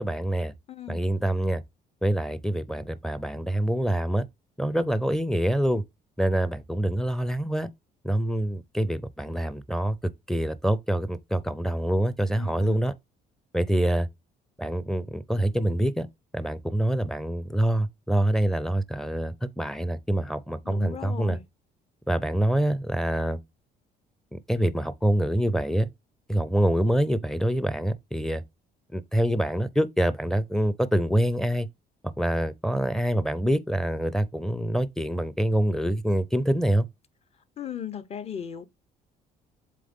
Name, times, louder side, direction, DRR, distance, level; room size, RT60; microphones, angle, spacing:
voice 1, 0.0-0.5 0.9-1.6 2.0-4.3 4.6-5.8 6.2-7.7 8.0-10.0 10.3-12.9 13.5-14.1 14.6-16.1 16.3-21.4 22.1-23.4 24.3-25.9 26.3-28.4 28.9-31.7 32.2-36.9, right 1 dB, 5° left, 0.5 m, -25 dB
voice 2, 0.7-1.0 12.3-12.8 20.6-21.4 37.6-38.7, left 8 dB, 35° left, 0.8 m, -37 dB
7.6 x 3.4 x 3.7 m
cardioid pair, 110°, 17 cm